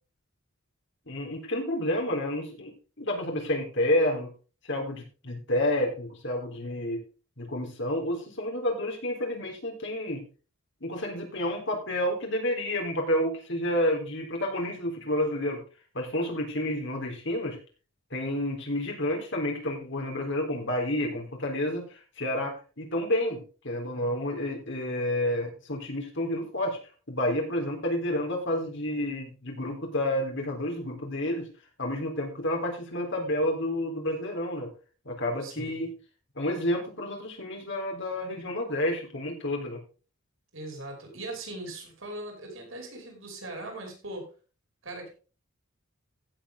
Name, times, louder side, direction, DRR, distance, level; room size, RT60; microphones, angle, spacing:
voice 1, 1.1-4.3 4.6-7.0 7.4-10.2 10.8-15.6 15.9-17.6 18.1-26.8 27.1-31.5 31.8-34.7 35.1-35.9 36.4-39.8, left 1 dB, 55° left, 1 dB, 3.8 m, -30 dB
voice 2, 35.4-35.8 40.5-44.3 44.8-45.1, right 2 dB, 65° right, 1 dB, 5.6 m, -40 dB
16.0 x 7.7 x 3.8 m, 0.35 s
head